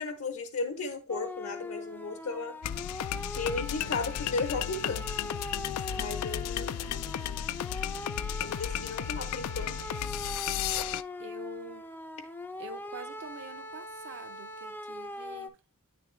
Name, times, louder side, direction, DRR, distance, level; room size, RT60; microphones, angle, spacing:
voice 1, 0.0-2.6 3.3-5.0 5.9-7.0 8.4-9.8, left 3 dB, 70° left, 0.8 m, -35 dB
sound 1, 1.1-15.5, left 1 dB, 10° left, 0.4 m, -41 dB
sound 2, 2.6-11.0, left 10 dB, 90° left, 0.3 m, -34 dB
voice 2, 11.2-11.8 12.6-15.6, right 2 dB, 55° right, 0.5 m, -46 dB
9.3 x 3.5 x 3.1 m
head